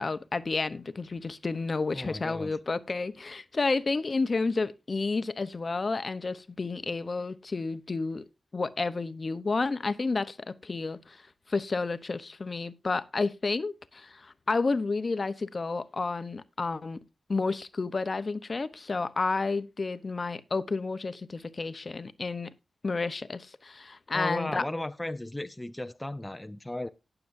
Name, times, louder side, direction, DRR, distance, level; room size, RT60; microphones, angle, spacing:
voice 1, 0.0-8.2 8.5-11.2 11.5-17.0 17.3-22.5 22.8-24.6, left 3 dB, 40° left, 0.8 m, -31 dB
voice 2, 1.9-2.6 24.1-26.9, left 1 dB, 15° left, 0.6 m, -35 dB
18.5 x 7.0 x 2.6 m
wide cardioid pair, 90°, 0 cm